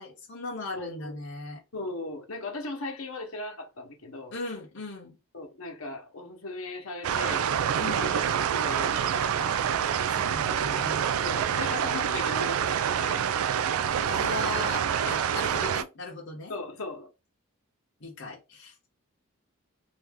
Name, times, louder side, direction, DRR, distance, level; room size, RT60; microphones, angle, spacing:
voice 1, 0.0-1.6 4.3-5.2 7.8-8.1 10.1-11.0 14.0-16.5 18.0-18.9, left 2 dB, 55° left, 1.0 m, -38 dB
voice 2, 0.7-1.2 1.7-4.3 5.3-7.5 8.0-8.2 8.5-9.7 11.2-13.6 16.5-17.1, left 2 dB, 80° left, 1.1 m, -38 dB
sound 1, 7.0-15.8, right 8 dB, 85° right, 0.3 m, -27 dB
2.9 x 2.6 x 3.6 m
head